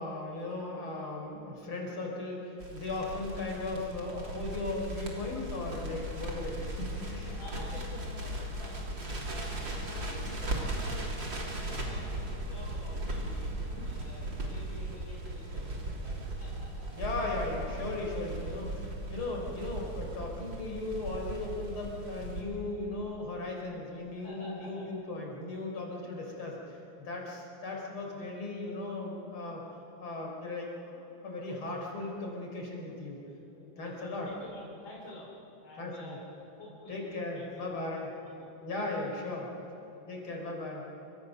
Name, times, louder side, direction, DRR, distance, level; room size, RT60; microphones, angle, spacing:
voice 1, 0.0-7.3 17.0-29.6 30.0-33.2 33.8-34.3 35.8-36.2 36.9-38.1 38.6-39.5 40.1-40.8, left 2 dB, 85° left, 0 dB, 5.0 m, -37 dB
Crackle, 2.6-22.4, right 1 dB, 60° right, 4.1 m, -37 dB
voice 2, 7.2-16.9 24.1-24.9 25.9-26.1 28.0-28.3 31.4-31.6 33.5-35.3 35.6-36.3 36.6-38.5 38.8-39.1 40.2-40.3, left 1 dB, 65° left, -3 dB, 3.8 m, -50 dB
27.5 x 24.0 x 6.6 m, 3.0 s
omnidirectional pair, 2.3 m